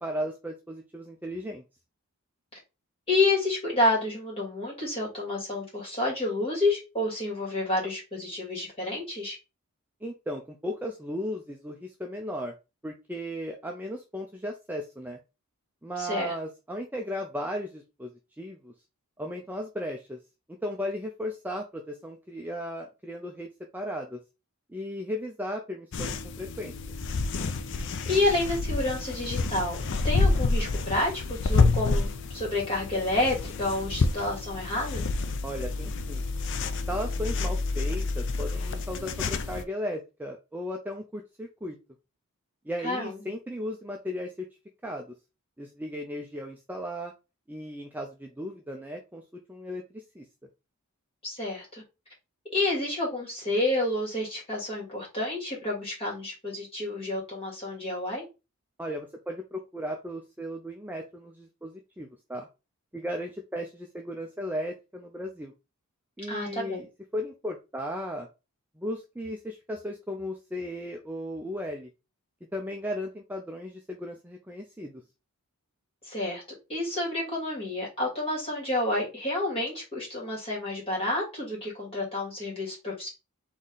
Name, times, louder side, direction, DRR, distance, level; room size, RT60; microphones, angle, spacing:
voice 1, 0.0-1.6 10.0-12.5 12.8-15.2 15.8-18.7 19.2-20.2 20.5-24.2 24.7-26.7 35.4-36.2 36.9-41.8 42.7-44.5 44.8-45.1 45.6-47.1 47.5-49.2 49.5-50.2 58.8-62.5 62.9-65.5 66.2-68.3 68.8-71.9 72.5-75.0, equal, 10° right, 2 dB, 0.4 m, -36 dB
voice 2, 3.1-9.4 16.0-16.3 28.1-35.0 42.8-43.2 51.2-51.8 52.5-58.2 66.3-66.8 76.0-76.4 76.7-83.1, left 2 dB, 25° left, -4 dB, 2.4 m, -29 dB
sound 1, 25.9-39.6, left 3 dB, 55° left, 0.5 m, -28 dB
4.1 x 3.1 x 3.8 m, 0.28 s
head